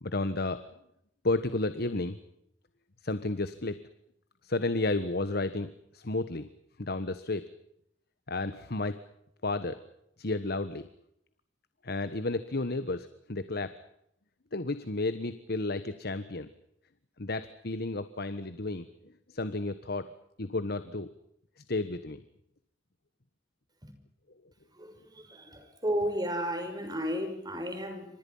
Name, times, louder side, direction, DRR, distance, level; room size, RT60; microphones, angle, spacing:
voice 1, 0.0-0.6 1.2-2.2 3.0-3.8 4.4-6.5 6.8-7.4 8.3-9.0 9.4-9.8 10.2-10.9 11.8-13.7 14.5-16.5 17.2-18.9 19.3-20.1 20.4-21.1 21.7-22.2, left 2 dB, 55° left, 12 dB, 1.4 m, -32 dB
voice 2, 24.7-28.1, equal, 20° right, 6 dB, 6.2 m, -33 dB
28.5 x 26.0 x 5.6 m, 0.75 s
head